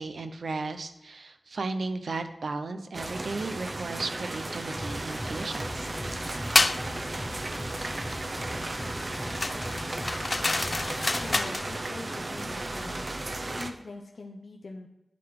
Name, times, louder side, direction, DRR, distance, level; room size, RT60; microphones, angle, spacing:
voice 1, 0.0-5.9, right 3 dB, 85° right, 8 dB, 0.8 m, -35 dB
sound 1, 2.9-13.7, right 2 dB, 45° right, 0.9 m, -35 dB
sound 2, 4.7-11.4, equal, 10° left, 1.0 m, -39 dB
sound 3, 6.5-6.8 9.4-11.7, left 2 dB, 45° left, 0.4 m, -27 dB
voice 2, 11.2-13.1 13.6-14.9, left 3 dB, 75° left, 1 dB, 0.9 m, -42 dB
11.0 x 4.0 x 7.6 m, 0.89 s
wide cardioid pair, 70°, 0 cm